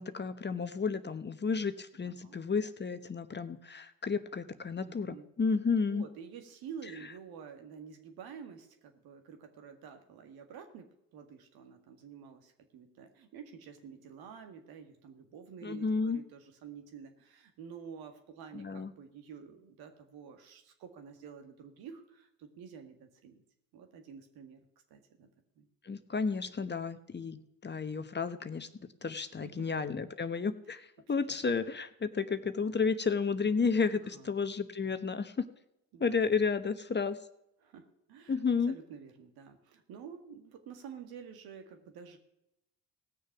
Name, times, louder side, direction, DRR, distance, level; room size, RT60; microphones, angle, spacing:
voice 1, 0.0-6.0 15.6-16.2 18.5-18.9 25.8-28.7 29.0-35.4 36.0-37.2 38.3-38.8, left 5 dB, 30° left, 11 dB, 1.1 m, -32 dB
voice 2, 2.0-2.4 4.9-5.3 5.9-23.4 23.7-24.6 24.9-25.3 25.6-25.7 29.2-29.6 31.3-31.4 33.9-34.3 35.9-36.1 37.6-42.2, right 7 dB, 70° right, 6 dB, 2.0 m, -49 dB
17.5 x 6.6 x 6.0 m, 0.85 s
hypercardioid pair, 55°, 38 cm